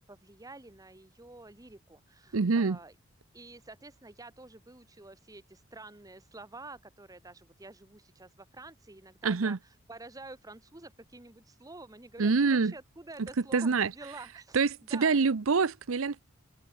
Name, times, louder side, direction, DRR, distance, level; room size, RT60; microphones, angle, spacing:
voice 1, 0.0-2.9 3.3-14.6 14.9-15.3, right 2 dB, 15° right, 1.1 m, -49 dB
voice 2, 2.3-2.8 9.2-9.6 12.2-12.7 13.5-13.9 14.5-16.2, right 4 dB, 85° right, 0.7 m, -26 dB
head